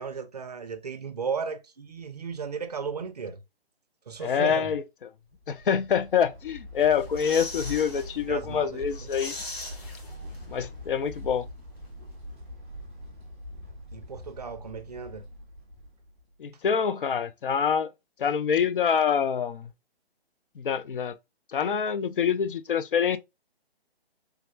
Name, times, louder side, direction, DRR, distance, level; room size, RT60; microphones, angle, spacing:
voice 1, 0.0-3.4 4.1-4.8 8.3-9.1 13.9-15.3, right 6 dB, 40° right, 0.5 m, -35 dB
voice 2, 4.2-4.8 5.5-9.3 10.5-11.5 16.4-17.9 18.2-19.7 20.6-21.2 21.5-23.2, left 7 dB, 55° left, 0.4 m, -26 dB
sound 1, 5.3-16.3, left 1 dB, 10° left, 0.7 m, -43 dB
sound 2, 6.8-8.1 8.5-8.6 8.9-10.6 10.9-11.0, left 2 dB, 75° left, 2.0 m, -40 dB
3.5 x 2.2 x 3.0 m
hypercardioid pair, 165°, 31 cm